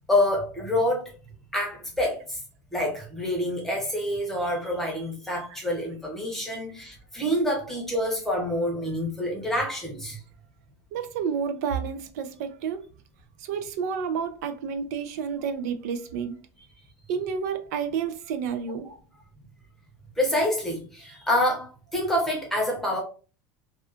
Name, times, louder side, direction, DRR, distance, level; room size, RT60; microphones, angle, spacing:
voice 1, 0.1-1.1 1.5-2.4 2.7-10.2 18.8-18.9 20.2-23.0, left 1 dB, 5° left, 0.7 m, -27 dB
voice 2, 10.9-12.8 13.4-16.4 17.1-18.9, right 6 dB, 75° right, 0.4 m, -30 dB
2.4 x 2.3 x 2.4 m
cardioid pair, 165°, 9 cm